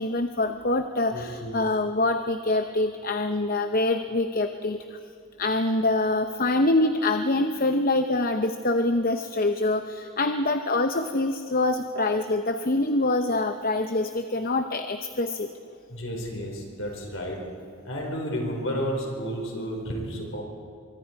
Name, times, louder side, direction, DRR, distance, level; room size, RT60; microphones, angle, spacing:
voice 1, 0.0-5.0 5.4-15.5, left 2 dB, 40° left, 7 dB, 0.7 m, -25 dB
voice 2, 1.1-1.6 15.9-17.4 17.8-20.4, equal, 60° left, 0 dB, 4.9 m, -32 dB
24.5 x 24.0 x 4.7 m, 2.5 s
head